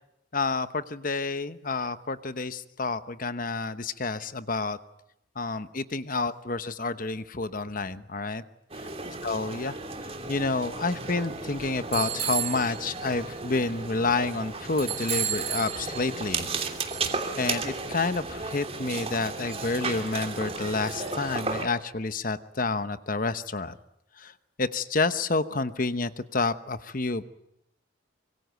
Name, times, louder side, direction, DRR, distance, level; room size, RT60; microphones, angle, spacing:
voice 1, 0.3-4.8 5.4-8.4 9.2-16.5 17.4-23.8 24.2-24.3 24.6-27.2, left 3 dB, 40° left, 12 dB, 1.0 m, -29 dB
sound 1, 8.7-21.6, right 5 dB, 30° right, 3.0 m, -33 dB
25.5 x 24.0 x 9.2 m, 0.80 s
head